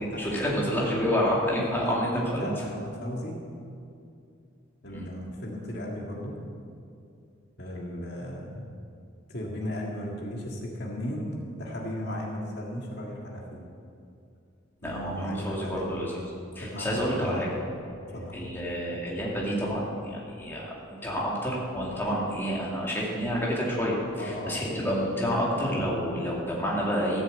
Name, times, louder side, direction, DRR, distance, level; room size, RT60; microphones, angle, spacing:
voice 1, 0.0-2.5 4.9-5.1 14.8-16.1 16.6-17.5 18.3-27.2, equal, 10° left, -5 dB, 2.4 m, -29 dB
voice 2, 1.7-3.4 4.8-6.4 7.6-8.6 9.3-13.7 14.8-16.0 16.6-17.5 18.1-18.3 24.2-24.6, equal, 55° left, -2 dB, 1.9 m, -36 dB
14.5 x 7.4 x 8.1 m, 2.5 s
head